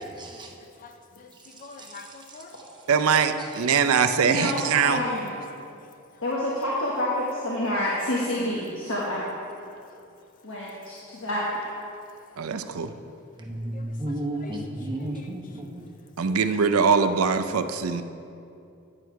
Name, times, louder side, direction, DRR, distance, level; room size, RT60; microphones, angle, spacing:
voice 1, 0.2-0.5 13.4-15.8, right 1 dB, 20° right, 0 dB, 0.9 m, -32 dB
voice 2, 1.6-2.5 5.5-5.6 13.7-13.9 14.4-14.5 16.3-16.4 17.9-18.0, left 4 dB, 40° left, 6 dB, 0.5 m, -44 dB
voice 3, 2.9-5.0 12.4-12.9 16.2-18.0, right 6 dB, 85° right, 10 dB, 0.5 m, -22 dB
voice 4, 4.2-5.3 6.2-9.4 10.4-11.7, left 1 dB, 65° left, -5 dB, 1.3 m, -28 dB
9.7 x 8.0 x 4.6 m, 2.6 s
head